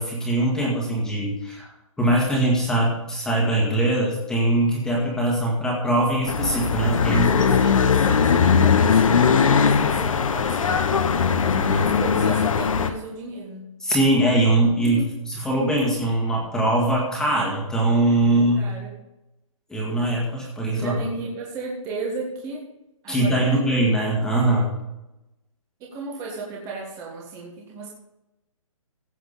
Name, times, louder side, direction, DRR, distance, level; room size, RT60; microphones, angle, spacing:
voice 1, 0.0-1.7 2.0-7.4 13.8-15.0 15.4-18.7 19.7-21.0 23.1-24.7, right 1 dB, 5° left, -3 dB, 1.9 m, -21 dB
sound 1, 6.3-12.9, left 6 dB, 70° left, 1.2 m, -19 dB
voice 2, 7.0-10.8 11.3-13.7 14.8-15.1 18.2-18.9 20.7-22.6 23.0-23.6 25.8-27.9, right 3 dB, 15° right, -2 dB, 1.6 m, -34 dB
16.0 x 7.8 x 4.1 m, 0.95 s
hypercardioid pair, 160°, 18 cm